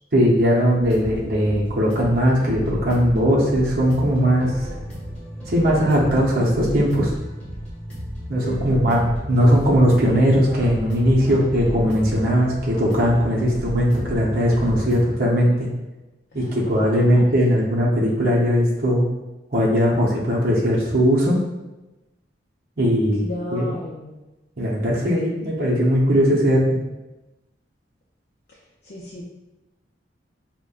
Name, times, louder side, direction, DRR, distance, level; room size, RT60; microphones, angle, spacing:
voice 1, 0.1-4.7 5.5-7.1 8.3-15.7 16.3-19.1 19.5-21.4 22.8-23.2 23.5-23.7 24.6-26.8, equal, 55° right, -6 dB, 0.7 m, -19 dB
sound 1, 0.8-15.0, equal, 10° left, 1.4 m, -33 dB
voice 2, 8.4-9.2 16.3-17.0 23.2-24.2 28.8-29.2, left 1 dB, 55° left, -4 dB, 0.5 m, -35 dB
5.1 x 2.1 x 2.4 m, 1.0 s
head